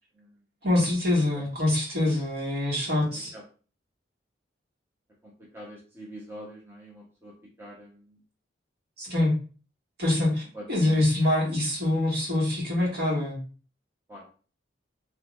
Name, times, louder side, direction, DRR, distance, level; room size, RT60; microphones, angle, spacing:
voice 1, 0.6-3.3 9.0-9.3 10.0-13.4, left 1 dB, 60° right, -5 dB, 1.7 m, -25 dB
voice 2, 5.2-7.3 7.6-8.2 10.5-11.1 14.1-14.3, equal, 15° right, -4 dB, 0.8 m, -44 dB
4.0 x 2.8 x 2.4 m, 0.37 s
head